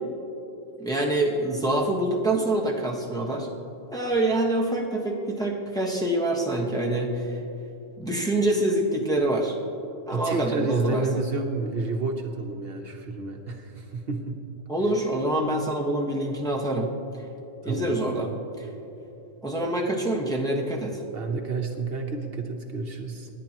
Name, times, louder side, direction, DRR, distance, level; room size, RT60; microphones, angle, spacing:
voice 1, 0.8-3.5 3.9-7.3 8.0-9.5 10.1-11.0 13.5-13.6 14.7-16.9 17.6-18.7 19.4-21.0, right 1 dB, 5° left, -3 dB, 1.3 m, -26 dB
voice 2, 10.1-14.4 17.6-18.0 21.1-23.3, right 3 dB, 65° right, 3 dB, 1.2 m, -30 dB
26.5 x 10.0 x 3.0 m, 2.8 s
omnidirectional pair, 1.1 m